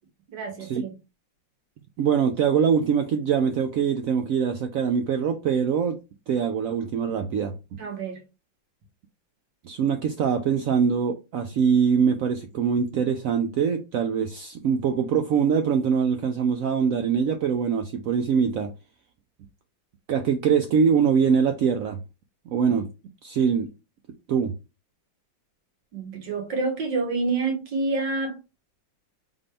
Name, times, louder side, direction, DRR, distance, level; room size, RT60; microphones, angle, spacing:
voice 1, 0.3-0.9 7.8-8.2 25.9-28.4, right 3 dB, 70° right, 2.1 m, -28 dB
voice 2, 2.0-6.0 6.3-7.5 9.6-18.7 20.1-22.0 22.5-22.9 23.2-23.7 24.3-24.5, right 7 dB, 90° right, 0.7 m, -23 dB
3.8 x 3.7 x 3.3 m
omnidirectional pair, 2.0 m